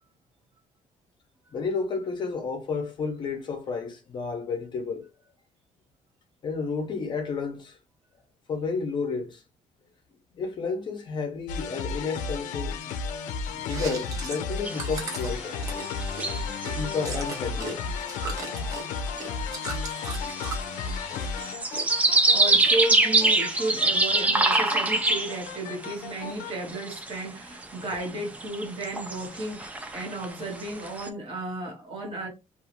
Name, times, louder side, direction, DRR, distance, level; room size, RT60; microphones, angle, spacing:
voice 1, 1.5-5.0 6.4-7.8 8.5-9.4 10.4-12.8 13.7-15.6 16.7-17.8 21.1-21.3, left 4 dB, 35° left, 0.5 m, -31 dB
sound 1, 11.5-26.5, left 5 dB, 80° left, 0.4 m, -34 dB
Chewing mastication, 13.6-17.7 18.0-20.7 21.1-21.8 22.1-23.0, right 3 dB, 25° right, 0.8 m, -38 dB
sound 2, 14.6-17.1 17.4-17.5 17.7-18.2 18.5-18.6 19.1-19.2 19.8-25.9 26.3-26.4 26.7-27.2 27.6-28.1 28.3-31.1, right 2 dB, 10° right, 0.3 m, -25 dB
voice 2, 21.8-32.3, right 2 dB, 50° right, 1.1 m, -34 dB
2.4 x 2.3 x 2.8 m
cardioid pair, 165°, 13 cm